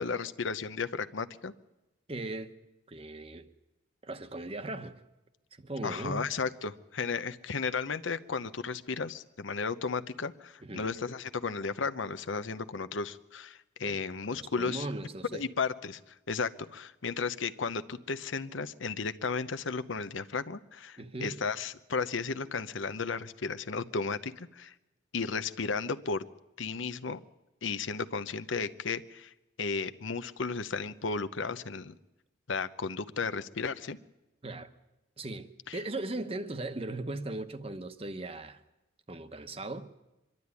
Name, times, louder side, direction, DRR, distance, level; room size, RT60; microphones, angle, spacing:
voice 1, 0.0-1.5 5.8-14.9 15.3-24.7 25.1-26.2 26.6-27.2 27.6-29.3 29.6-31.9 32.5-34.0 35.7-35.8, left 4 dB, 85° left, 0.8 m, -34 dB
voice 2, 2.1-2.6 2.9-3.5 4.0-5.0 5.5-6.3 10.6-10.9 13.8-14.0 14.3-15.4 21.0-21.4 34.4-34.7 35.2-38.6 39.1-39.9, right 2 dB, 30° right, 1.0 m, -38 dB
24.0 x 12.5 x 9.7 m
head